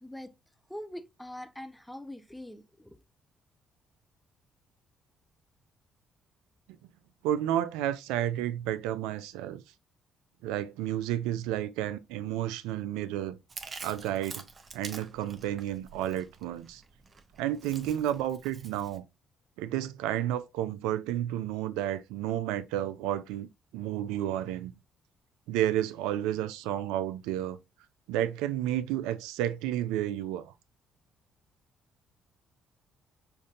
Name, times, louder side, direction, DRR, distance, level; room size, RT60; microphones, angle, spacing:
voice 1, 0.0-0.3 0.7-3.0, left 1 dB, 5° left, 0.6 m, -43 dB
voice 2, 7.2-9.6 10.4-13.4 13.8-14.4 14.7-16.8 17.4-19.0 19.6-23.5 23.7-24.7 25.5-27.6 28.1-30.5, right 12 dB, 80° right, 0.3 m, -31 dB
Chewing mastication, 13.5-19.0, right 4 dB, 40° right, 0.6 m, -47 dB
5.1 x 2.6 x 2.3 m
hypercardioid pair, 55°, 0 cm